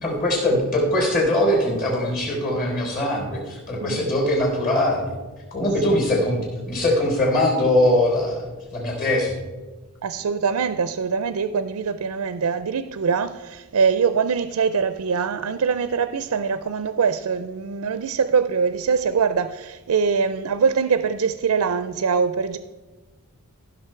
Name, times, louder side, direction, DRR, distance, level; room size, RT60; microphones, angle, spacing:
voice 1, 0.0-5.1 5.5-9.4, left 1 dB, 40° left, 3.8 m, -22 dB
voice 2, 10.0-22.6, right 6 dB, 80° right, 0.4 m, -23 dB
15.0 x 6.4 x 4.4 m
head